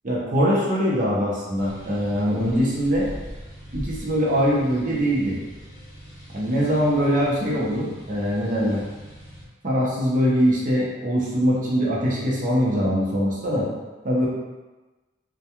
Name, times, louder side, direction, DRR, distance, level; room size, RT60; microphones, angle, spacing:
voice 1, 0.0-3.1 3.7-5.4 6.3-8.8 9.6-13.7 14.0-14.3, equal, 40° right, -5 dB, 0.6 m, -22 dB
sound 1, 1.6-9.4, equal, 20° left, 0.7 m, -41 dB
2.2 x 2.2 x 2.8 m, 1.2 s
head